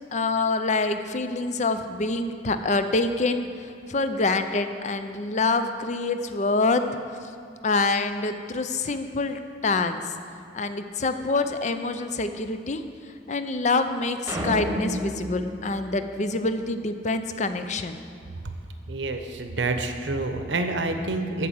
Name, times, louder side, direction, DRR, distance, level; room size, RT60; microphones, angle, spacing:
voice 1, 0.1-6.8 7.6-10.1 10.5-12.8 13.3-18.0, left 3 dB, 40° left, 9 dB, 0.5 m, -26 dB
sound 1, 14.3-16.8, equal, 15° right, 1.1 m, -32 dB
voice 2, 18.9-21.5, right 2 dB, 80° right, 6 dB, 0.9 m, -28 dB
13.5 x 4.8 x 7.2 m, 2.5 s
head